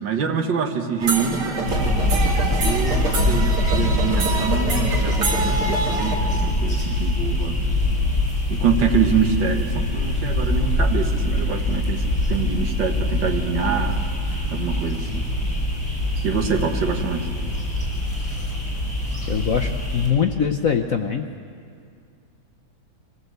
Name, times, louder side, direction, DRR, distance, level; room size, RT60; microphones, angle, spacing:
voice 1, 0.0-2.0 2.6-3.0 3.3-7.6 8.5-12.0 12.3-14.0 14.5-15.2 16.2-17.2, right 6 dB, 65° right, 5 dB, 2.0 m, -25 dB
sound 1, 1.0-6.1, right 2 dB, 85° right, 3.4 m, -25 dB
sound 2, 1.7-20.1, left 1 dB, 35° left, 6.6 m, -23 dB
voice 2, 19.3-21.3, left 7 dB, 60° left, 5 dB, 0.9 m, -22 dB
23.5 x 17.0 x 8.1 m, 2.3 s
omnidirectional pair, 2.2 m